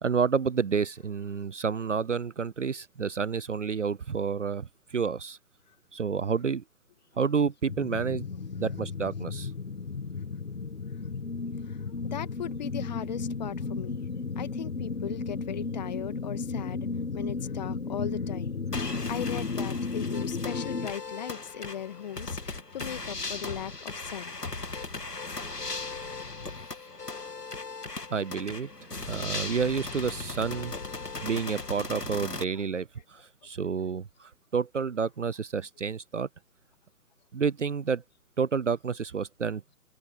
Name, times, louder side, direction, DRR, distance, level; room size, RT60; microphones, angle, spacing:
voice 1, 0.0-5.4 5.9-6.6 7.2-8.3 8.6-9.5 28.1-28.7 29.0-30.7 31.2-36.3 37.3-38.0 38.4-39.6, right 6 dB, 50° right, 0.8 m, -29 dB
sound 1, 7.7-20.9, left 4 dB, 60° left, 2.6 m, -34 dB
voice 2, 12.0-14.1 14.4-16.9 17.1-24.4 25.9-26.0 31.0-31.2 32.6-32.7, left 9 dB, 25° left, 1.9 m, -38 dB
sound 2, 18.7-32.4, left 3 dB, 80° left, 2.2 m, -37 dB
figure-of-eight pair, 140°, 47 cm